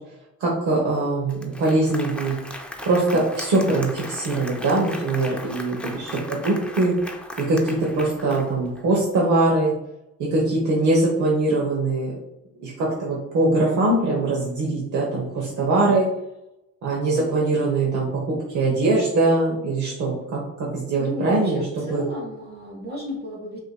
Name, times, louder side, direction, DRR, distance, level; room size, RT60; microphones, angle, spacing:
voice 1, 0.4-2.3 2.8-6.9 7.4-9.7 10.2-12.2 12.6-16.1 16.8-22.0, right 2 dB, 75° right, -3 dB, 0.9 m, -22 dB
Applause, 0.9-1.0 1.3-8.8, left 1 dB, 5° left, 0.5 m, -37 dB
voice 2, 21.0-23.6, equal, 35° right, -1 dB, 1.4 m, -34 dB
4.9 x 2.8 x 2.2 m, 0.88 s
cardioid pair, 90°, 30 cm